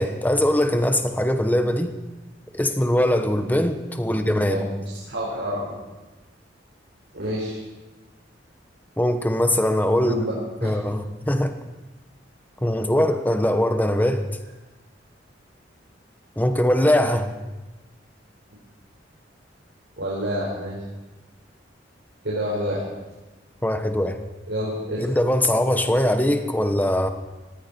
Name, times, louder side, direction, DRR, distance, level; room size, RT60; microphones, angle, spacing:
voice 1, 0.0-1.9 2.5-4.6 9.0-10.2 10.6-11.5 12.6-14.3 16.4-17.3 23.6-24.2 25.0-27.1, left 1 dB, 10° left, 7 dB, 1.2 m, -21 dB
voice 2, 4.1-5.8 7.1-7.6 10.0-10.4 10.6-10.8 20.0-20.8 22.2-22.8 24.5-25.0, equal, 90° right, -6 dB, 5.0 m, -28 dB
19.0 x 15.5 x 4.5 m, 1.1 s
head